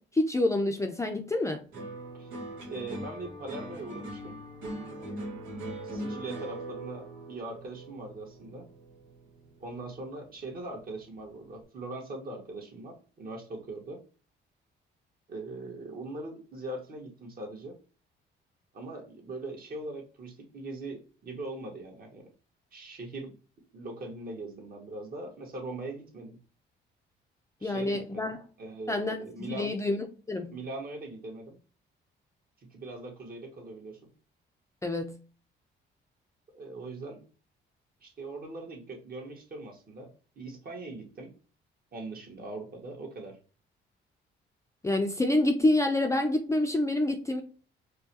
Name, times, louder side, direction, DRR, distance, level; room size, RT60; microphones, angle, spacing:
voice 1, 0.0-1.6 27.6-28.4 28.9-30.5 34.8-35.2 44.8-47.4, left 1 dB, 15° left, 0.5 m, -27 dB
sound 1, 1.7-10.2 10.5-11.1, right 1 dB, 90° right, 1.5 m, -41 dB
voice 2, 2.6-4.4 5.8-8.6 9.6-14.0 15.3-17.8 18.7-22.3 22.7-23.3 23.7-26.4 27.6-29.8 30.5-31.6 32.7-34.1 36.5-37.2 38.0-41.3 41.9-43.4, right 2 dB, 50° right, 1.5 m, -41 dB
4.6 x 2.2 x 2.8 m
cardioid pair, 90°, 20 cm